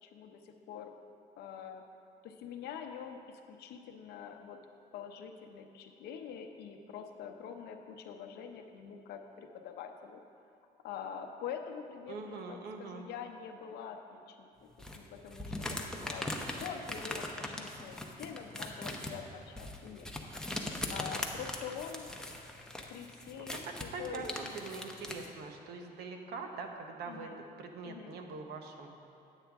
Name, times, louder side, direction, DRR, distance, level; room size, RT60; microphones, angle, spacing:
voice 1, 0.0-0.9 1.4-1.8 2.2-4.6 4.9-10.2 10.8-14.7 15.0-20.1 20.6-22.1 22.9-24.4 27.1-27.4 27.8-28.2, left 7 dB, 75° left, 5 dB, 0.7 m, -45 dB
voice 2, 12.1-13.1 23.4-28.9, right 4 dB, 75° right, 4 dB, 0.9 m, -43 dB
sound 1, 14.8-25.3, left 1 dB, 5° left, 0.7 m, -40 dB
9.0 x 8.4 x 3.5 m, 2.8 s
cardioid pair, 110°, 17 cm